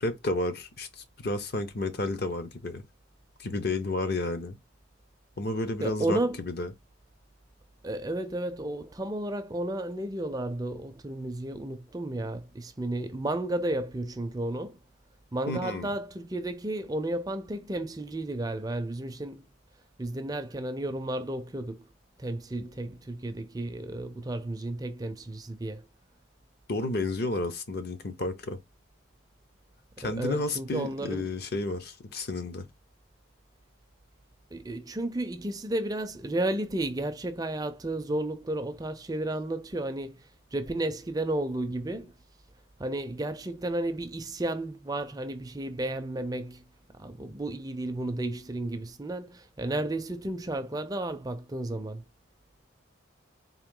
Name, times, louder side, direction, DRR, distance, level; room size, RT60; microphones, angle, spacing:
voice 1, 0.0-2.8 3.4-4.6 5.4-6.7 15.5-15.9 26.7-28.6 30.0-32.7, left 2 dB, 50° left, 0.6 m, -31 dB
voice 2, 5.8-6.4 7.8-14.8 15.3-19.5 20.0-21.9 22.2-25.8 30.0-31.2 34.5-42.1 42.8-46.6 46.9-52.0, right 1 dB, 20° right, 0.4 m, -33 dB
3.7 x 2.6 x 3.7 m
head